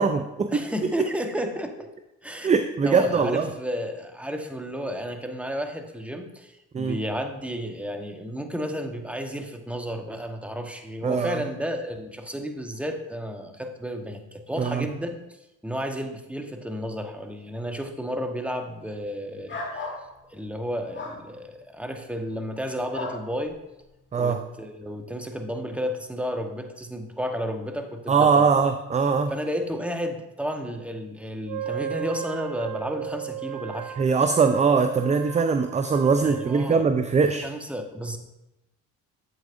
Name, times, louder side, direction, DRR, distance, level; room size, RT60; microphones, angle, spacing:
voice 1, 0.0-0.7 2.4-3.5 6.7-7.0 11.0-11.4 14.6-14.9 24.1-24.4 28.1-29.3 34.0-37.5, right 5 dB, 20° right, 9 dB, 0.4 m, -21 dB
voice 2, 0.5-1.9 2.2-2.5 2.8-15.2 15.6-19.9 20.3-23.6 24.1-28.5 29.3-34.0 36.2-36.8 37.4-38.2, equal, 5° right, 5 dB, 1.0 m, -32 dB
sound 1, 19.5-20.0 20.9-21.2 22.9-23.2, left 3 dB, 35° left, 1.7 m, -33 dB
Wind instrument woodwind instrument, 31.4-37.1, right 11 dB, 75° right, 0.7 m, -36 dB
8.1 x 8.0 x 2.5 m, 0.94 s
supercardioid pair, 65°, 35 cm